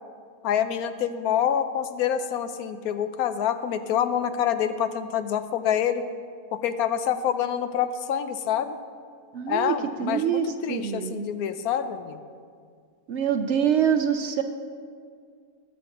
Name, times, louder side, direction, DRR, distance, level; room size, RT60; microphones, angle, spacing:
voice 1, 0.4-6.0 6.5-8.8 9.5-12.2, left 9 dB, 85° left, 10 dB, 1.1 m, -26 dB
voice 2, 9.3-11.3 13.1-14.4, right 8 dB, 65° right, 8 dB, 0.8 m, -25 dB
20.0 x 8.4 x 3.0 m, 2.1 s
omnidirectional pair, 1.5 m